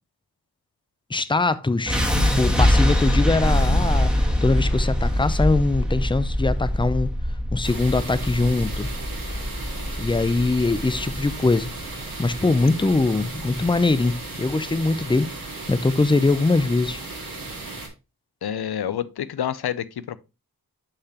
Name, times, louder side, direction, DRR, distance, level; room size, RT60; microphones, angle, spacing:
voice 1, 1.1-2.0 2.3-7.1 7.5-8.9 10.0-11.7 12.2-15.3 15.7-17.0, left 3 dB, 15° left, 0.4 m, -22 dB
sound 1, 1.9-13.9, left 1 dB, ahead, 1.6 m, -23 dB
sound 2, 7.6-17.9, right 2 dB, 65° right, 2.1 m, -36 dB
voice 2, 18.4-20.2, left 9 dB, 85° left, 0.5 m, -28 dB
6.6 x 5.8 x 2.8 m
wide cardioid pair, 75°, 37 cm